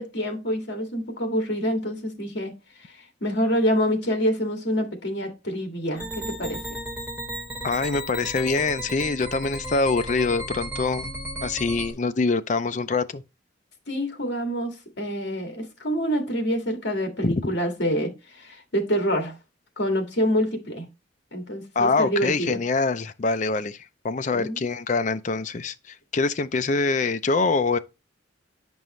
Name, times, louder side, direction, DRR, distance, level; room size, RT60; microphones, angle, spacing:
voice 1, 0.0-2.5 2.8-6.6 13.9-19.3 19.8-20.9 21.3-22.6 24.3-24.7, equal, 60° left, 1.9 m, -26 dB
sound 1, 6.0-11.9, right 1 dB, 10° right, 2.7 m, -35 dB
voice 2, 7.6-11.1 11.4-13.2 17.2-17.4 21.8-23.8 24.0-27.8, left 3 dB, 40° left, 0.4 m, -24 dB
8.8 x 5.4 x 3.1 m
head